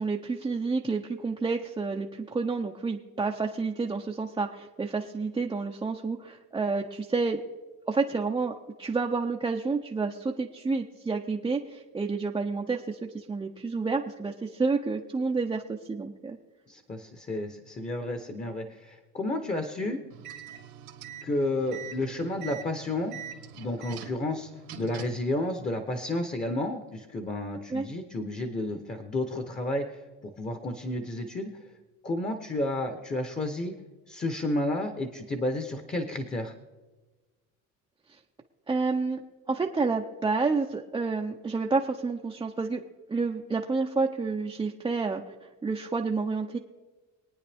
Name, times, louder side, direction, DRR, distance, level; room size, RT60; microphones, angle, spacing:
voice 1, 0.0-7.4 7.9-16.4 27.7-27.9 38.7-39.2 39.5-42.8 43.1-45.2 45.6-46.6, right 4 dB, 15° right, 0 dB, 0.6 m, -29 dB
voice 2, 16.7-20.0 21.2-23.1 23.6-24.5 24.7-31.5 32.0-33.7 34.1-36.5, left 1 dB, 20° left, 6 dB, 1.0 m, -31 dB
sound 1, 20.1-25.3, right 8 dB, 85° right, 1.7 m, -44 dB
24.5 x 9.5 x 3.5 m, 1.3 s
cardioid pair, 145°, 34 cm